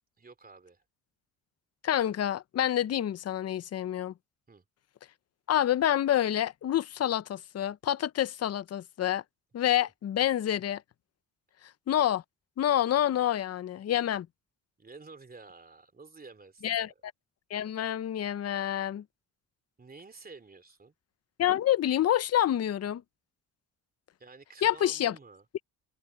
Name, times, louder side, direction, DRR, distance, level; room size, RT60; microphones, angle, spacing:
voice 1, 0.2-0.8 4.5-4.6 14.8-17.0 19.8-20.9 24.2-25.6, right 4 dB, 25° right, 3.1 m, -51 dB
voice 2, 1.8-4.1 5.5-9.2 9.5-10.8 11.9-12.2 12.6-14.3 16.6-17.1 17.5-19.0 21.4-23.0 24.6-25.1, left 11 dB, 45° left, 0.7 m, -27 dB
open air
cardioid pair, 85°, 35 cm